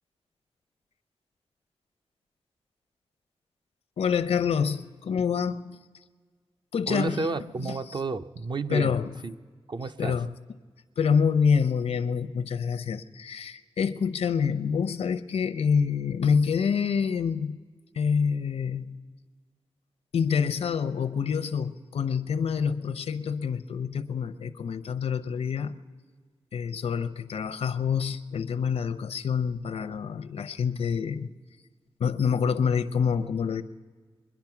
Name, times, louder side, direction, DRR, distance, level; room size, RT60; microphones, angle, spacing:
voice 1, 4.0-5.8 6.7-7.3 7.6-7.8 8.7-9.1 10.0-10.3 11.0-17.6 18.0-19.0 20.1-25.7 26.5-31.3 32.0-33.6, left 6 dB, 80° left, 0.6 m, -27 dB
voice 2, 6.9-9.4 9.7-10.2, right 4 dB, 45° right, 0.5 m, -32 dB
23.0 x 10.5 x 5.9 m
cardioid pair, 70°, 10 cm